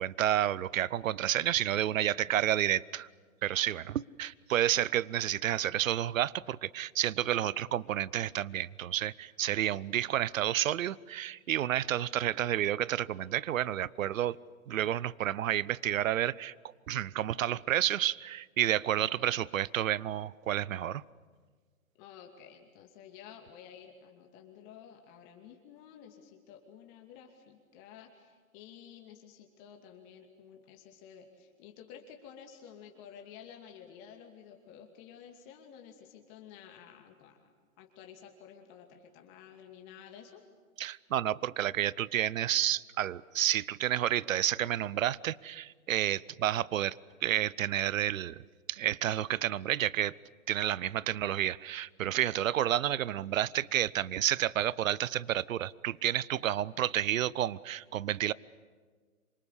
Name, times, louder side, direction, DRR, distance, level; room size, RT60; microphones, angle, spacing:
voice 1, 0.0-3.1 3.4-14.4 14.7-16.5 16.9-21.0 40.8-48.4 48.7-50.1 50.5-58.3, right 11 dB, 65° right, 22 dB, 0.8 m, -30 dB
voice 2, 2.1-2.5 18.9-19.5 22.0-40.4, left 8 dB, 35° left, 3 dB, 2.6 m, -52 dB
27.0 x 25.0 x 8.4 m, 1.5 s
hypercardioid pair, 125°, 43 cm